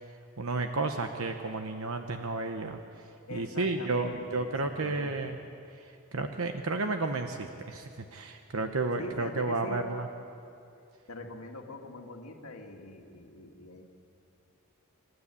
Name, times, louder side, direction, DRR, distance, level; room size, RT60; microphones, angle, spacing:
voice 1, 0.4-2.8 3.3-5.4 5.8-10.1, right 3 dB, 65° right, 6 dB, 1.0 m, -32 dB
voice 2, 3.3-5.3 9.0-9.8 11.1-13.8, left 1 dB, 75° left, 3 dB, 2.2 m, -43 dB
28.0 x 13.0 x 8.4 m, 2.6 s
head